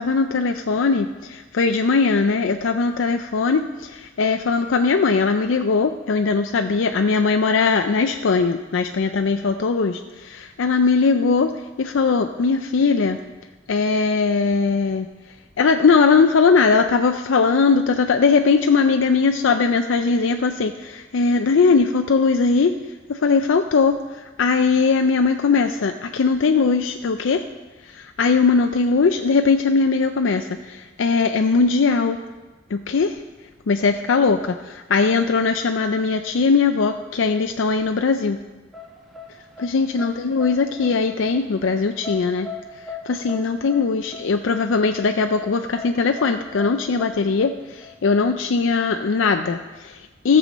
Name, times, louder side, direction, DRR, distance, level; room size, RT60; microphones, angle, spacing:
voice 1, 0.0-13.2 13.7-22.7 23.1-27.5 27.8-32.2 32.7-33.2 33.7-38.4 39.6-42.5 42.7-50.4, left 4 dB, 65° left, 6 dB, 0.4 m, -20 dB
sound 1, 38.7-48.6, left 5 dB, ahead, 1.4 m, -38 dB
14.0 x 6.9 x 5.2 m, 1.2 s
head